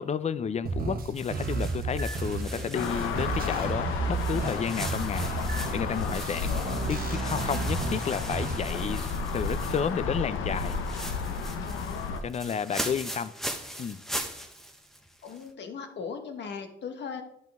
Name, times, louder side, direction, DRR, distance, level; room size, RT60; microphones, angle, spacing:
voice 1, 0.0-6.5 6.9-10.8 12.2-13.3 13.8-14.0, left 7 dB, 35° left, 0.5 m, -31 dB
sound 1, 0.7-8.7, right 4 dB, 50° right, 1.2 m, -33 dB
sound 2, 1.1-3.7 4.1-10.1 10.4-15.5, equal, ahead, 1.1 m, -40 dB
sound 3, 2.7-12.2, left 5 dB, 90° left, 0.9 m, -32 dB
voice 2, 11.6-12.2 15.2-17.2, left 5 dB, 60° left, 1.4 m, -38 dB
10.5 x 5.8 x 3.6 m
cardioid pair, 90°, 20 cm